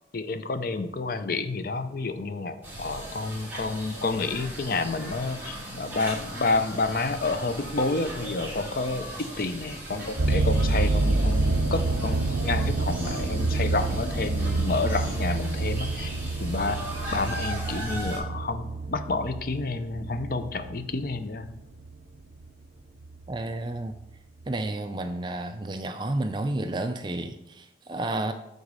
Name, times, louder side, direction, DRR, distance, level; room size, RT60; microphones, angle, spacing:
voice 1, 0.1-16.1 16.4-21.5, left 3 dB, 55° left, 10 dB, 0.6 m, -29 dB
sound 1, 2.6-18.2, right 1 dB, 10° right, 2.3 m, -38 dB
sound 2, 10.2-22.4 23.0-23.4 24.0-24.1 24.4-24.5, right 2 dB, 75° right, 0.7 m, -28 dB
voice 2, 23.3-24.0 24.5-28.3, right 2 dB, 25° right, 8 dB, 0.4 m, -31 dB
8.0 x 4.0 x 5.4 m, 0.86 s
head